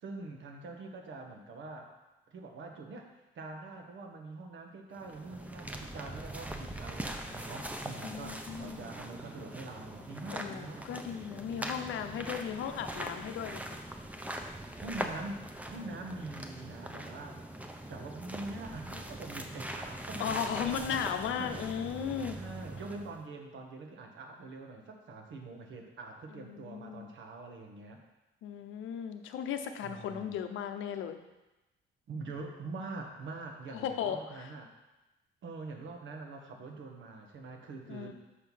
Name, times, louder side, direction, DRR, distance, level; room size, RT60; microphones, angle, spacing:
voice 1, 0.0-1.9 2.3-3.1 3.3-10.9 14.7-17.4 17.9-21.0 21.4-21.7 22.4-28.0 29.8-30.4 32.1-34.7 35.4-38.1, right 3 dB, 70° right, 3 dB, 1.3 m, -44 dB
sound 1, 4.9-23.2, right 1 dB, 5° right, 0.7 m, -42 dB
voice 2, 8.0-8.9 10.3-13.8 20.2-22.4 26.4-27.1 28.4-31.2 33.7-34.5 37.9-38.1, left 8 dB, 80° left, 7 dB, 0.7 m, -36 dB
6.6 x 4.6 x 5.4 m, 1.0 s
cardioid pair, 90°, 20 cm